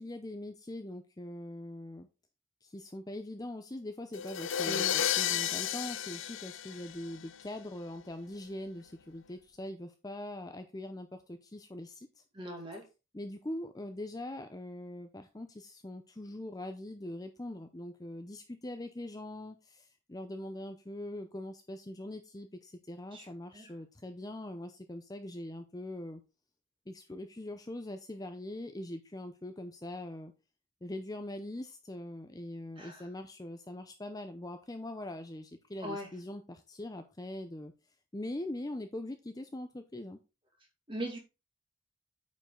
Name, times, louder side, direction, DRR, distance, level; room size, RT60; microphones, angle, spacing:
voice 1, 0.0-2.1 2.6-12.2 13.1-26.2 26.9-30.3 30.8-37.7 38.1-40.2, left 1 dB, 15° left, 7 dB, 0.5 m, -42 dB
sound 1, 4.1-7.4, left 10 dB, 65° left, 0.5 m, -32 dB
voice 2, 4.6-4.9 12.3-12.8 23.1-23.3 23.5-23.7 32.8-33.1 35.8-36.1 40.9-41.2, equal, 25° right, 2 dB, 2.3 m, -39 dB
8.8 x 5.4 x 3.8 m, 0.29 s
head